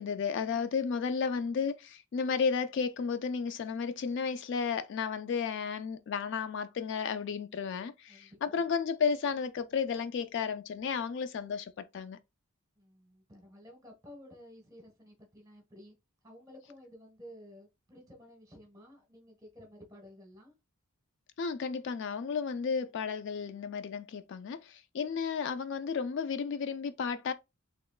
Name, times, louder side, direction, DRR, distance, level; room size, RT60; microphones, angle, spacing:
voice 1, 0.0-12.2 21.4-27.3, left 6 dB, 55° left, 0.3 m, -33 dB
voice 2, 8.1-8.7 12.8-15.9 16.2-20.5, equal, 15° right, 1.3 m, -53 dB
4.2 x 3.0 x 2.3 m
head